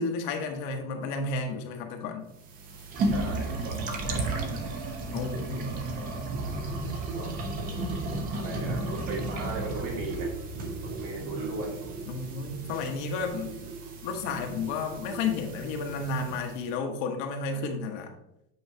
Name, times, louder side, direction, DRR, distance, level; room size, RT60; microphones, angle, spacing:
voice 1, 0.0-2.3 5.1-5.7 12.1-13.5 14.0-18.1, left 4 dB, 60° left, 3 dB, 1.2 m, -32 dB
sound 1, 2.3-16.6, right 2 dB, 20° right, 0.3 m, -34 dB
voice 2, 3.1-4.6 5.1-6.2 7.1-7.3 8.3-10.3 10.8-11.8 13.1-13.2, right 2 dB, 70° right, -2 dB, 2.3 m, -38 dB
8.6 x 4.6 x 2.7 m, 0.83 s
cardioid pair, 170°, 45 cm